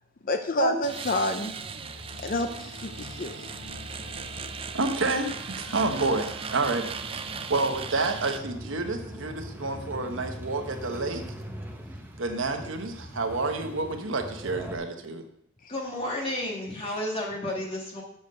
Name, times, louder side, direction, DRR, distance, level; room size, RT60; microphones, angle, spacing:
voice 1, 0.2-1.5 2.2-3.5, left 2 dB, 45° left, 6 dB, 0.6 m, -29 dB
sound 1, 0.8-8.4, right 6 dB, 30° right, 0.5 m, -38 dB
sound 2, 1.3-11.5, left 2 dB, 65° left, 1.0 m, -47 dB
voice 2, 4.7-6.9 7.5-11.2 12.2-15.2, right 3 dB, 75° right, 5 dB, 1.1 m, -29 dB
sound 3, 5.2-14.8, equal, 10° right, 1.0 m, -42 dB
voice 3, 15.7-18.0, left 1 dB, 30° left, -1 dB, 2.2 m, -32 dB
6.9 x 6.9 x 6.7 m, 0.72 s
head